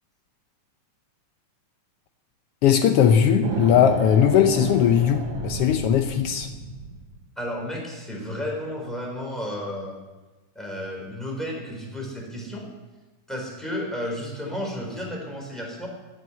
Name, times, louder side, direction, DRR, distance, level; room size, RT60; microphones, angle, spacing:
voice 1, 2.6-6.5, left 8 dB, 90° left, 7 dB, 1.3 m, -19 dB
sound 1, 3.4-7.1, right 3 dB, 50° right, 2.4 m, -32 dB
voice 2, 7.4-10.0 10.5-12.7 13.3-15.9, left 1 dB, ahead, -2 dB, 4.0 m, -32 dB
17.5 x 7.9 x 8.3 m, 1.2 s
omnidirectional pair, 3.6 m